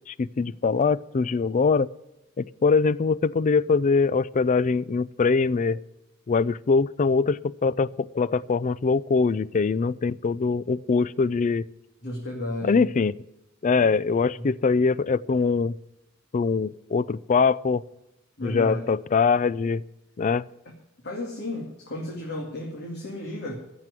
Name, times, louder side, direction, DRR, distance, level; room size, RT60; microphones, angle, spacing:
voice 1, 0.1-1.9 2.4-5.8 6.3-11.7 12.6-13.1 13.6-15.8 16.3-17.8 18.4-19.8 20.2-20.4, left 4 dB, 35° left, 20 dB, 0.4 m, -23 dB
voice 2, 12.0-12.9 13.7-13.9 14.4-14.5 18.4-18.9 21.0-23.5, left 1 dB, 55° left, 0 dB, 2.4 m, -33 dB
15.0 x 6.1 x 9.5 m, 0.91 s
head